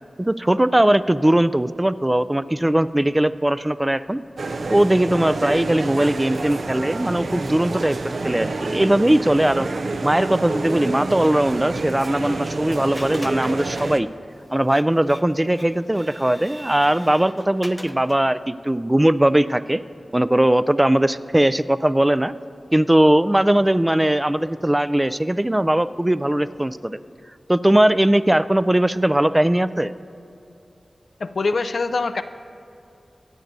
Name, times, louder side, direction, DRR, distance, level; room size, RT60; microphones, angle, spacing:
voice 1, 0.2-4.2 4.7-9.7 10.0-14.1 14.5-19.8 20.1-22.3 22.7-27.0 27.5-29.9, right 1 dB, 20° right, 14 dB, 0.3 m, -19 dB
sound 1, 4.4-14.0, right 3 dB, 80° right, 0.5 m, -28 dB
Printer, 11.1-18.3, equal, 5° left, 0.7 m, -41 dB
voice 2, 31.2-32.2, left 3 dB, 75° left, 10 dB, 0.4 m, -23 dB
22.5 x 8.8 x 2.7 m, 2.7 s
cardioid pair, 50°, 0 cm